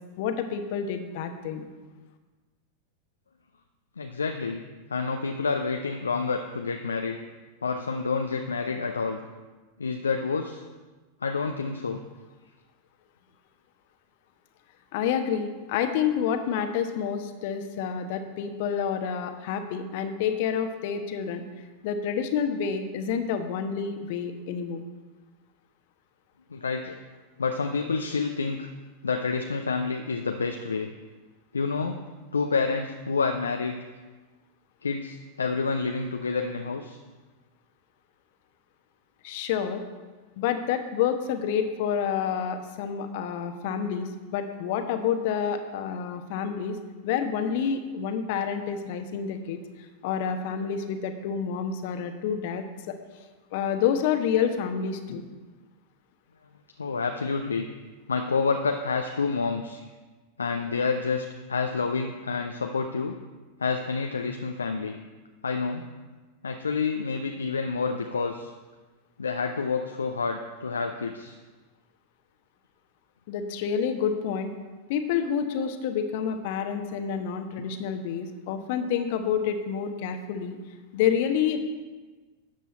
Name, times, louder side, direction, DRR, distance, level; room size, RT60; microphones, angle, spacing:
voice 1, 0.2-1.7 14.9-21.4 21.8-24.8 39.2-39.8 40.4-46.8 47.0-49.6 50.0-53.0 53.5-55.2 73.3-74.5 74.9-80.6 80.9-81.6, left 7 dB, 50° left, 7 dB, 1.1 m, -28 dB
voice 2, 4.0-4.6 4.9-7.2 7.6-9.2 9.8-10.6 11.2-12.0 26.5-27.0 27.4-28.7 29.0-30.9 31.5-32.0 32.3-33.8 34.8-37.0 56.8-57.7 58.1-59.9 60.4-63.2 63.6-65.0 65.4-65.9 66.4-68.5 69.2-71.4, left 4 dB, 75° left, 5 dB, 0.6 m, -28 dB
12.5 x 8.0 x 4.3 m, 1.3 s
figure-of-eight pair, 90°, 0 cm